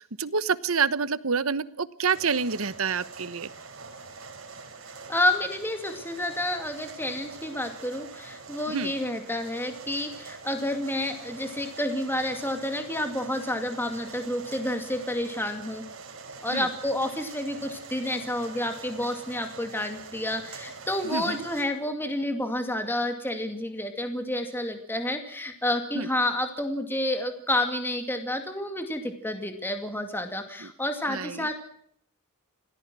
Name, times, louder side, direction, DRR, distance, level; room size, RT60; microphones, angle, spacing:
voice 1, 0.0-3.5 8.7-8.9 16.5-16.7 21.1-21.4 25.9-26.1 30.6-30.7 31.1-31.5, right 5 dB, 80° right, 15 dB, 1.1 m, -28 dB
sound 1, 2.1-21.7, right 4 dB, 65° right, 5.3 m, -44 dB
voice 2, 5.1-15.8 16.4-31.5, left 1 dB, 10° left, 6 dB, 2.3 m, -29 dB
26.5 x 18.0 x 6.2 m, 0.65 s
head